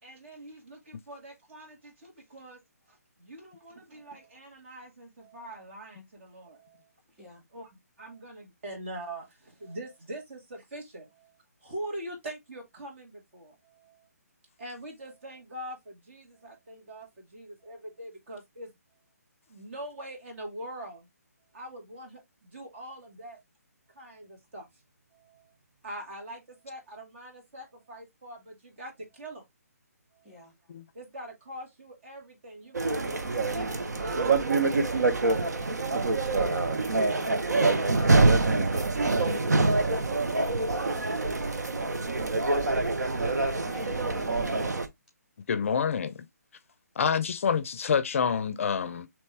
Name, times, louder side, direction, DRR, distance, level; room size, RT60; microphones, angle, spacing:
voice 1, 0.0-2.6 2.9-6.9 7.5-14.1 14.6-19.0 19.5-21.1 21.5-23.4 23.9-24.8 25.1-25.6 25.8-29.5 30.1-30.5 30.9-37.0 37.5-38.4 38.9-39.8, right 1 dB, 50° right, 2.0 m, -44 dB
sound 1, 32.7-44.9, right 3 dB, 90° right, 0.8 m, -25 dB
voice 2, 41.2-42.0 43.6-44.9, left 1 dB, ahead, 1.6 m, -49 dB
voice 3, 45.5-46.2 47.0-49.1, left 6 dB, 50° left, 0.4 m, -27 dB
4.2 x 3.0 x 3.3 m
hypercardioid pair, 155°, 9 cm